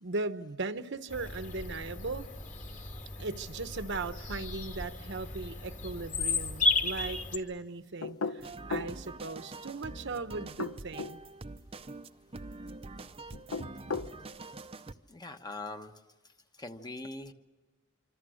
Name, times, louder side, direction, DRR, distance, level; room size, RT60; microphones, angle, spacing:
voice 1, 0.0-2.3 3.2-11.2, right 3 dB, 60° right, 10 dB, 1.0 m, -38 dB
Bird vocalization bird call bird song, 1.1-7.4, left 2 dB, 35° left, 2.5 m, -34 dB
sound 1, 8.0-9.0 10.4-11.2 13.3-14.1, left 4 dB, 90° left, 0.8 m, -35 dB
sound 2, 8.4-14.9, right 2 dB, 30° right, 0.7 m, -45 dB
voice 2, 15.1-15.9 16.5-17.3, left 2 dB, 20° left, 6 dB, 1.1 m, -42 dB
26.0 x 26.0 x 6.4 m, 1.3 s
head